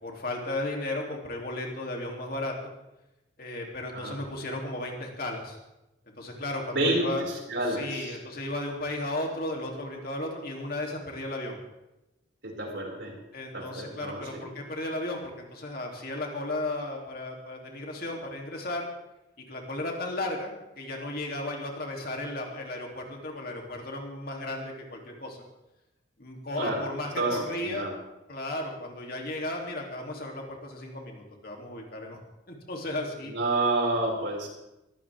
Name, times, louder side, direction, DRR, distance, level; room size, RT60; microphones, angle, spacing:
voice 1, 0.0-2.5 3.4-5.6 6.2-7.2 7.7-11.6 13.3-18.9 19.5-25.4 26.2-27.9 28.3-32.2 32.5-33.3, left 1 dB, 50° left, 0 dB, 3.0 m, -35 dB
voice 2, 6.7-8.2 12.4-13.1 13.5-14.5 26.6-26.8 27.2-28.0 33.3-34.5, right 2 dB, 65° right, -2 dB, 5.7 m, -29 dB
22.0 x 16.0 x 3.6 m, 0.95 s
head